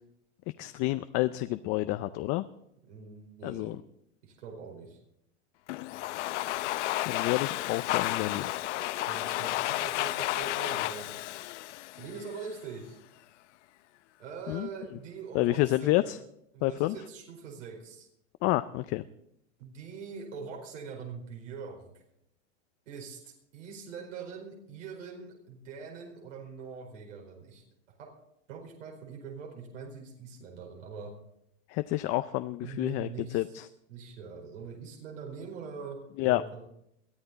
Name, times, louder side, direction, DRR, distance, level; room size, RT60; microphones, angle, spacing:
voice 1, 0.6-2.4 3.4-3.8 7.0-8.5 14.5-14.7 15.3-16.2 16.6-17.0 18.4-19.0 31.7-33.1 33.3-33.7 36.2-36.4, left 18 dB, 35° left, 11 dB, 0.5 m, -29 dB
voice 2, 2.9-3.7 4.2-5.0 9.1-11.3 12.0-13.0 14.2-16.1 16.5-18.1 19.6-21.9 22.9-27.6 28.5-31.1 32.6-33.6 33.9-36.6, right 5 dB, 80° right, 0 dB, 4.8 m, -43 dB
Domestic sounds home sounds, 5.7-12.6, left 16 dB, 75° left, 0.7 m, -32 dB
22.0 x 13.0 x 4.0 m, 0.78 s
supercardioid pair, 130°, 36 cm